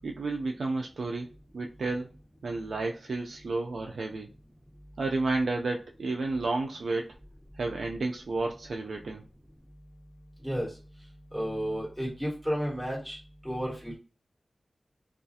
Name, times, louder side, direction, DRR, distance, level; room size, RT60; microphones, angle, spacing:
voice 1, 0.0-1.3 1.5-2.1 2.4-4.3 5.0-7.2 7.6-9.2, right 3 dB, 90° right, 1 dB, 0.3 m, -31 dB
voice 2, 10.4-10.7 11.3-13.2 13.4-14.0, equal, 5° right, -5 dB, 1.4 m, -32 dB
2.4 x 2.3 x 2.7 m, 0.35 s
wide cardioid pair, 80°, 0 cm